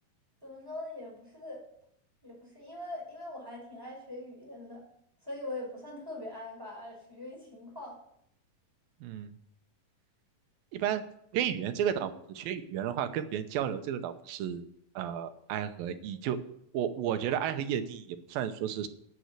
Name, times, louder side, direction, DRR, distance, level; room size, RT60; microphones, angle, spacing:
voice 1, 0.4-1.6 2.2-4.8 5.2-8.0 11.9-12.0, left 1 dB, 5° right, -2 dB, 5.0 m, -42 dB
voice 2, 9.0-9.3 10.7-11.0 11.3-14.6 15.0-16.4 16.7-18.9, right 9 dB, 90° right, 9 dB, 2.7 m, -32 dB
9.5 x 8.8 x 8.2 m, 0.72 s
omnidirectional pair, 4.1 m